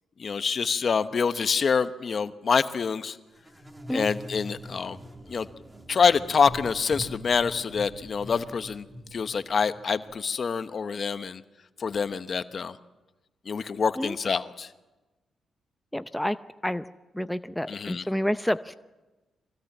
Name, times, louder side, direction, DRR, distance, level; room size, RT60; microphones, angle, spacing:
voice 1, 0.2-3.2 3.9-5.0 5.3-5.5 5.9-8.9 9.1-11.4 11.8-12.8 13.5-14.7 17.7-18.1, left 5 dB, 50° left, 12 dB, 1.0 m, -26 dB
sound 1, 3.4-10.2, equal, 15° right, 1.9 m, -43 dB
voice 2, 15.9-16.4 16.6-16.8 17.1-18.8, equal, 5° left, 12 dB, 0.6 m, -28 dB
23.0 x 16.5 x 7.3 m, 1.1 s
cardioid pair, 65°, 0 cm